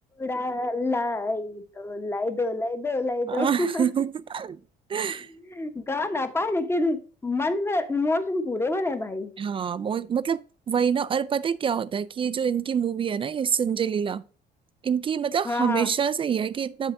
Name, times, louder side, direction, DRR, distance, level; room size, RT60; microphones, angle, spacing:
voice 1, 0.2-3.9 5.5-9.3 15.4-15.9, left 2 dB, 15° left, 1.1 m, -27 dB
voice 2, 3.3-4.6 4.9-5.3 9.4-14.2 14.8-16.9, right 7 dB, 30° right, 0.4 m, -26 dB
8.1 x 7.3 x 2.7 m
cardioid pair, 110°, 17 cm